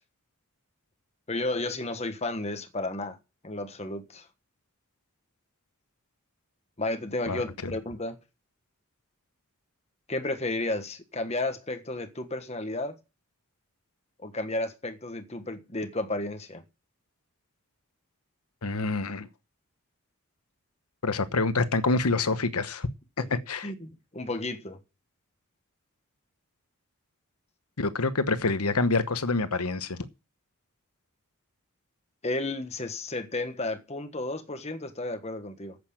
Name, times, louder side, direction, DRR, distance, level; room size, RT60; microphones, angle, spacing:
voice 1, 1.3-3.2 3.4-4.3 6.8-8.2 10.1-13.0 14.2-16.6 23.2-23.3 23.6-24.8 32.2-35.8, left 2 dB, 30° left, 1.3 m, -32 dB
voice 2, 7.3-7.7 18.6-19.3 21.0-22.9 23.3-23.7 27.8-30.0, left 3 dB, 90° left, 1.1 m, -27 dB
9.1 x 8.2 x 8.8 m
head